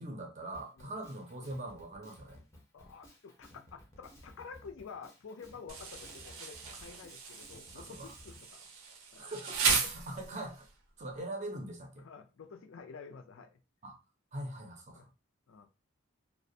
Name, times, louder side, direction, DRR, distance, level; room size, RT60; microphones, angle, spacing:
voice 1, 0.0-2.4 7.7-8.1 9.2-10.7 11.0-12.1 13.8-13.9 14.3-15.0, right 1 dB, 35° right, 0.6 m, -42 dB
Drum kit, 0.5-8.5, equal, 15° left, 0.6 m, -57 dB
voice 2, 2.7-8.7 9.1-9.3 9.8-9.9 12.0-13.6 14.9-15.1 15.5-15.7, left 5 dB, 65° left, 0.4 m, -50 dB
Insect, 5.7-10.7, right 5 dB, 80° right, 0.6 m, -35 dB
2.4 x 2.1 x 2.6 m
head